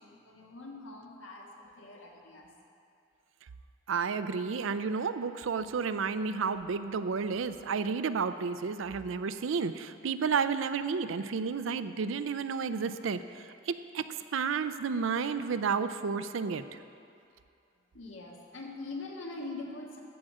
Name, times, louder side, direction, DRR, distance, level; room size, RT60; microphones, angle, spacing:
voice 1, 0.0-2.5 17.9-20.0, left 2 dB, 80° left, -1 dB, 1.6 m, -43 dB
voice 2, 3.9-14.1 14.3-16.8, right 5 dB, 80° right, 12 dB, 0.5 m, -31 dB
14.0 x 4.9 x 7.5 m, 2.5 s
head